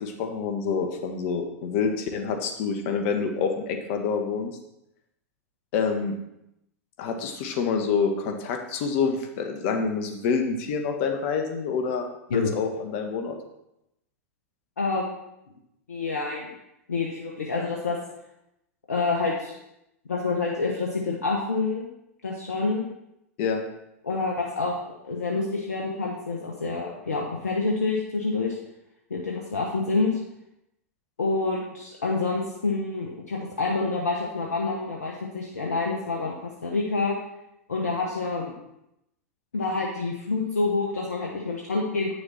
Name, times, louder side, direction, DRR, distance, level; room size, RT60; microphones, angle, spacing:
voice 1, 0.0-4.6 5.7-6.2 7.0-13.4 23.4-23.6, left 5 dB, 60° left, 4 dB, 1.6 m, -27 dB
voice 2, 14.8-15.1 15.9-16.5 16.9-18.0 18.9-19.5 20.0-21.9 22.2-22.9 24.0-28.6 29.1-30.2 31.2-37.1 37.7-38.5 39.5-42.1, left 3 dB, 90° left, -1 dB, 1.3 m, -27 dB
9.5 x 6.6 x 4.3 m, 0.84 s
hypercardioid pair, 100°, 8 cm